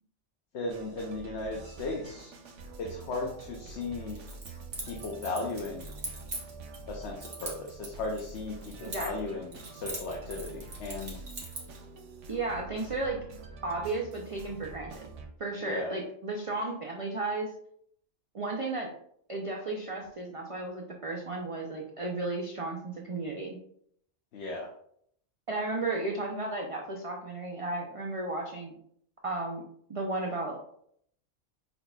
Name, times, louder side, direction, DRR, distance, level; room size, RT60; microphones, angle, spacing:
voice 1, 0.5-2.3 2.8-4.2 4.8-5.9 6.9-11.2 15.6-15.9 24.3-24.7, left 2 dB, 65° left, -1 dB, 1.0 m, -36 dB
sound 1, 0.7-15.3, right 3 dB, 85° right, 1.0 m, -46 dB
Keys jangling, 4.1-6.8 7.2-9.3 9.5-11.8, right 2 dB, 70° right, 1.5 m, -41 dB
voice 2, 8.8-9.3 12.3-13.2 13.6-15.1 15.4-17.5 18.3-18.9 19.3-23.6 25.5-28.7 29.2-29.6 29.9-30.6, right 2 dB, 40° right, -1 dB, 0.5 m, -34 dB
5.2 x 4.0 x 2.3 m, 0.67 s
omnidirectional pair, 1.2 m